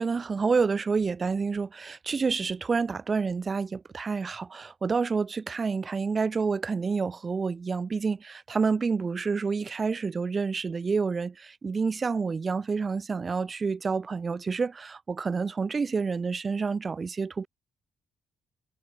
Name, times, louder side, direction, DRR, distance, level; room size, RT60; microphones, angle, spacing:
voice 1, 0.0-17.5, right 5 dB, 35° right, 0.4 m, -28 dB
cardioid pair, 90°, 0 cm